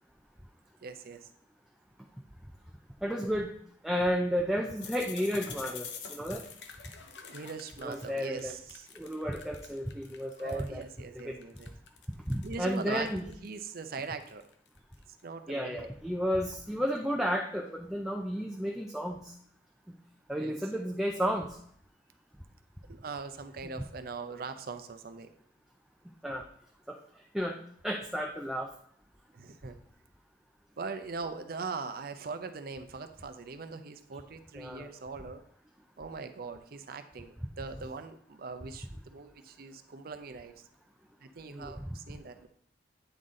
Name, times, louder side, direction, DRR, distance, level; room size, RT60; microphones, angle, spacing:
voice 1, 0.8-1.3 7.3-8.9 10.4-11.7 12.4-13.1 13.4-14.4 15.2-15.9 20.4-20.5 22.9-25.3 29.3-29.8 30.8-35.4 36.0-40.7 41.2-42.5, right 4 dB, 60° right, 9 dB, 0.6 m, -41 dB
voice 2, 3.0-3.5 3.8-6.4 7.8-8.5 9.0-10.8 11.3-11.4 12.3-13.3 15.5-19.3 20.3-21.5 26.2-26.4 27.3-27.6 27.8-28.7 34.6-34.9 41.5-41.7, equal, 5° right, 1 dB, 0.5 m, -32 dB
sound 1, 4.8-10.8 11.2-15.0, left 6 dB, 75° left, 0.8 m, -47 dB
9.0 x 4.0 x 3.7 m, 0.65 s
head